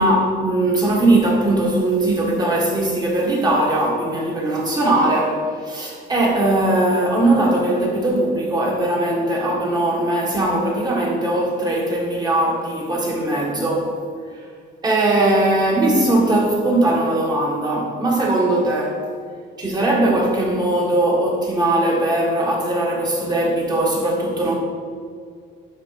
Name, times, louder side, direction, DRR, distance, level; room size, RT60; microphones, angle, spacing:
voice 1, 0.0-13.9 14.3-14.4 14.8-19.0 19.6-24.5, right 1 dB, 20° right, -2 dB, 1.5 m, -20 dB
10.5 x 5.2 x 4.1 m, 2.1 s
cardioid pair, 180°, 19 cm